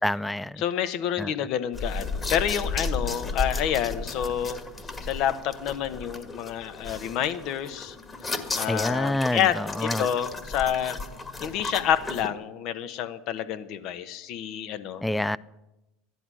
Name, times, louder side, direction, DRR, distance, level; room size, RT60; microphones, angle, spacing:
voice 1, 0.0-0.6 1.2-1.3 8.7-10.1 15.0-15.4, left 1 dB, 5° left, 19 dB, 0.4 m, -27 dB
voice 2, 0.6-4.6 5.0-8.0 8.5-11.0 11.4-15.0, left 9 dB, 55° left, 11 dB, 1.0 m, -28 dB
sound 1, 1.7-12.3, left 3 dB, 25° left, 1.7 m, -34 dB
14.0 x 10.5 x 6.2 m, 0.97 s
hypercardioid pair, 80°, 0 cm